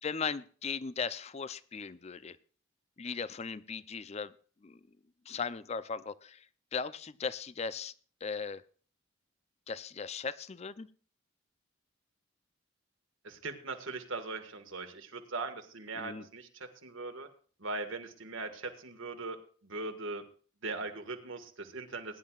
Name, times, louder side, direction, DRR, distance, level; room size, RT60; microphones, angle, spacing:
voice 1, 0.0-2.4 3.0-4.3 4.6-4.8 5.3-6.5 6.7-7.9 8.2-8.6 9.7-10.9 16.0-16.2, left 5 dB, 30° left, 16 dB, 0.5 m, -37 dB
voice 2, 13.2-17.3 17.6-19.4 19.6-20.2 20.6-22.2, right 3 dB, 75° right, 6 dB, 1.7 m, -40 dB
20.5 x 10.5 x 2.4 m, 0.42 s
head